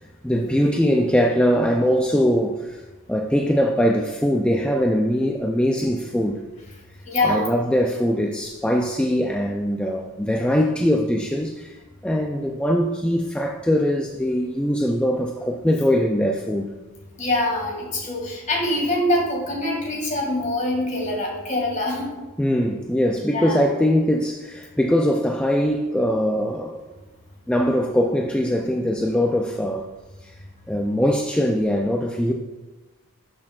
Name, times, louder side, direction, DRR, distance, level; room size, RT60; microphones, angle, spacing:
voice 1, 0.2-2.8 3.1-6.4 7.2-11.8 12.0-16.7 22.4-26.8 27.5-29.9 30.2-30.3 30.7-32.3, equal, 5° left, 0.3 m, -21 dB
voice 2, 7.1-7.5 17.2-22.1 23.3-23.7, left 1 dB, 35° left, 2.0 m, -24 dB
12.0 x 6.2 x 2.4 m
head